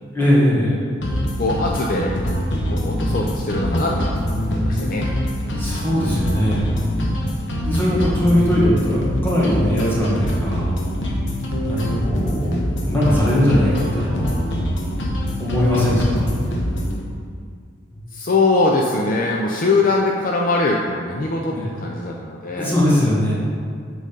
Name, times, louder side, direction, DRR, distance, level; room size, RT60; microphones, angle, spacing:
voice 1, 0.1-0.7 3.1-3.3 5.6-6.6 7.6-10.7 11.7-14.3 15.4-16.3 17.9-18.0 21.5-21.7 22.6-23.3, left 1 dB, 10° left, -8 dB, 1.8 m, -20 dB
sound 1, 1.0-17.0, equal, 85° left, 1.0 m, -24 dB
voice 2, 1.4-2.2 2.7-4.2 4.4-5.1 18.1-22.8, left 2 dB, 45° left, -1 dB, 0.5 m, -21 dB
7.5 x 3.9 x 5.3 m, 2.1 s
head